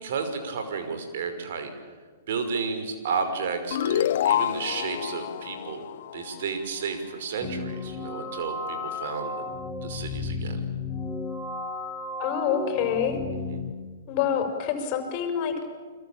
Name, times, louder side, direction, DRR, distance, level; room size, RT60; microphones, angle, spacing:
voice 1, 0.0-1.7 2.3-5.8 6.1-9.4 9.8-10.6 13.5-13.6, right 5 dB, 60° right, 7 dB, 5.8 m, -32 dB
sound 1, 3.7-6.9, left 11 dB, 55° left, 0.8 m, -28 dB
sound 2, 7.4-13.7, left 3 dB, 10° left, 3.9 m, -33 dB
voice 2, 12.2-13.2 14.1-15.7, left 8 dB, 40° left, 6 dB, 6.2 m, -27 dB
29.5 x 22.5 x 8.9 m, 1.5 s
figure-of-eight pair, 115°, 0 cm